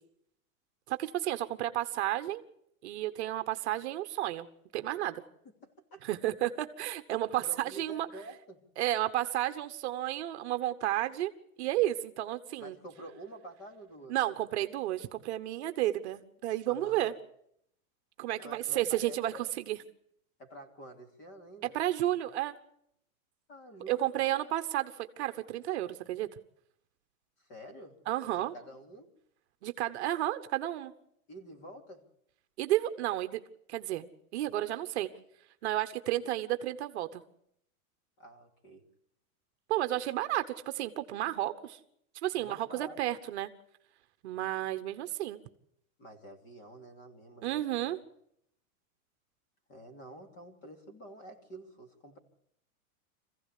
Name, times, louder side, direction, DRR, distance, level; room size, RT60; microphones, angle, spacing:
voice 1, 0.9-2.4 2.8-4.5 4.7-5.2 6.0-8.1 8.8-11.3 11.6-12.8 14.1-17.1 18.2-19.8 21.7-22.6 23.9-26.3 28.1-28.5 29.6-30.9 32.6-33.4 33.7-34.1 34.3-35.1 35.6-37.2 39.7-41.8 42.2-43.5 44.2-45.4 47.4-48.0, right 14 dB, 45° right, 8 dB, 1.2 m, -32 dB
voice 2, 5.6-6.0 7.4-8.6 12.6-14.2 16.7-17.1 18.4-19.4 20.4-21.8 23.5-24.5 27.4-28.0 28.3-29.1 31.3-32.1 38.2-38.8 42.3-43.0 46.0-47.6 49.7-52.2, right 1 dB, 25° left, 5 dB, 3.0 m, -49 dB
25.5 x 16.0 x 8.4 m, 0.73 s
supercardioid pair, 175°, 44 cm